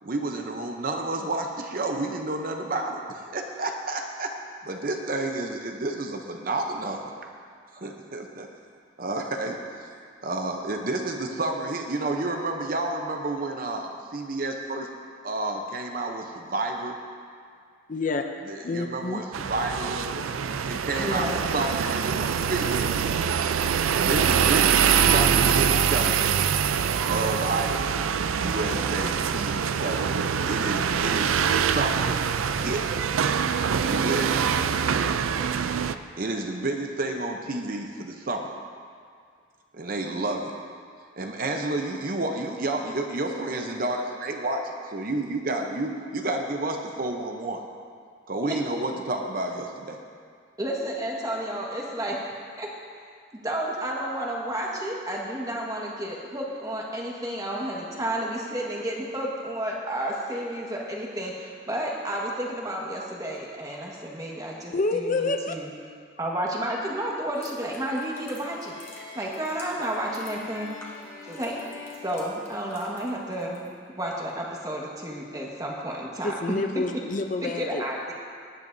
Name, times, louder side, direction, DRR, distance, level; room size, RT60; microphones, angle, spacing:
voice 1, 0.0-4.3 4.6-7.1 7.7-8.5 9.0-14.9 15.2-17.0 18.4-20.1 20.6-22.9 23.9-26.5 27.0-28.0 28.3-30.1 30.5-32.2 32.6-33.0 33.8-34.5 36.2-38.5 39.7-40.5 41.2-47.6 48.3-50.0, right 2 dB, 45° right, 3 dB, 0.8 m, -30 dB
voice 2, 17.9-18.2 18.6-19.2 64.7-65.6 76.2-77.8, left 3 dB, 40° left, 6 dB, 0.5 m, -28 dB
sound 1, 19.3-35.9, right 7 dB, 85° right, 0.4 m, -24 dB
voice 3, 21.0-21.4 48.4-48.5 50.6-52.2 52.6-52.7 53.3-65.7 66.2-68.7 69.1-70.7 71.2-71.5 72.0-76.4 76.7-76.9 77.4-78.1, right 1 dB, 20° right, -2 dB, 1.5 m, -31 dB
sound 2, 67.3-73.7 74.0-74.3, left 1 dB, 15° left, 2.0 m, -50 dB
sound 3, 68.4-73.0, left 3 dB, 70° left, 2.9 m, -45 dB
19.0 x 10.5 x 2.7 m, 2.1 s
head